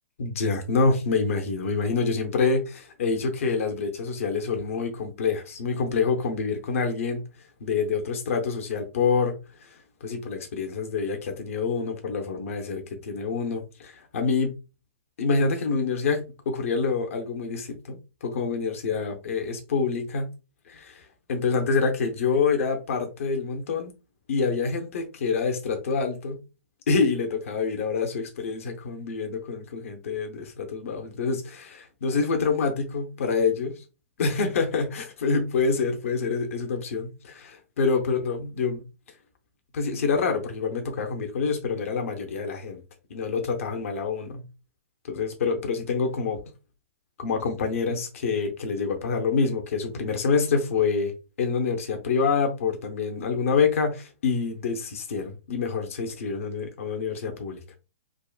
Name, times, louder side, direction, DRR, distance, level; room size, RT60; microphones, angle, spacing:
voice 1, 0.2-7.2 7.6-9.3 9.6-14.5 15.2-20.3 20.7-23.9 24.3-26.4 26.9-33.8 34.2-38.8 39.7-42.8 43.1-44.4 45.0-46.4 47.2-51.1 51.4-57.6, left 4 dB, 70° left, 0.7 m, -26 dB
3.6 x 2.0 x 2.3 m
hypercardioid pair, 130°, 8 cm